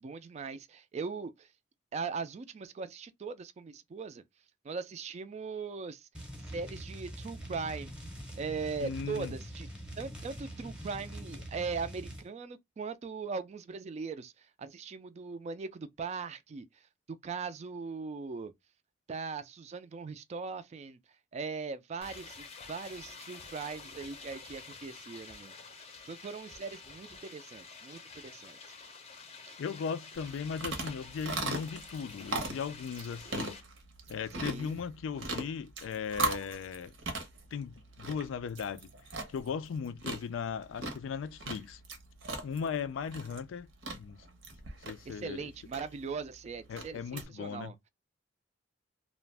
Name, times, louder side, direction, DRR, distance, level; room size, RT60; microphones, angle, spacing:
voice 1, 0.0-1.5 1.9-4.2 4.6-6.1 6.5-7.9 8.4-9.7 10.0-16.8 17.2-18.5 19.1-21.0 21.3-28.6 29.4-29.6 34.3-34.8 45.1-47.8, right 5 dB, 35° right, 0.3 m, -40 dB
sound 1, 6.1-12.3, equal, 5° right, 0.7 m, -44 dB
voice 2, 8.8-9.3 29.6-33.6 34.1-36.9 37.5-38.9 39.3-41.8 42.4-43.7 43.9-44.2 44.9-45.5 46.7-47.7, left 6 dB, 90° left, 0.3 m, -37 dB
sound 2, 22.0-33.6, left 4 dB, 35° left, 0.5 m, -49 dB
sound 3, 30.2-47.3, right 2 dB, 75° right, 0.7 m, -40 dB
2.4 x 2.0 x 3.2 m
head